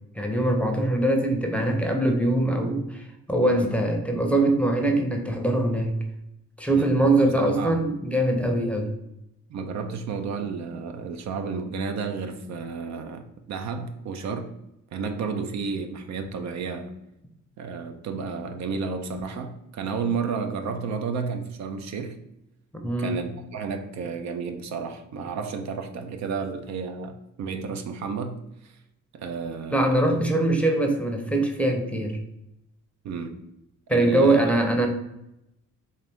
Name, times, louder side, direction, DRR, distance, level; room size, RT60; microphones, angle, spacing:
voice 1, 0.2-6.0 6.6-8.9 22.7-23.2 29.7-32.2 33.9-34.9, right 1 dB, 5° left, 3 dB, 0.6 m, -22 dB
voice 2, 7.2-7.8 9.5-14.5 14.9-16.9 17.6-22.2 23.0-28.7 29.1-30.3 33.0-33.4 33.9-34.5, right 5 dB, 65° right, 7 dB, 0.5 m, -32 dB
4.0 x 2.5 x 3.4 m, 0.87 s
cardioid pair, 90°, 30 cm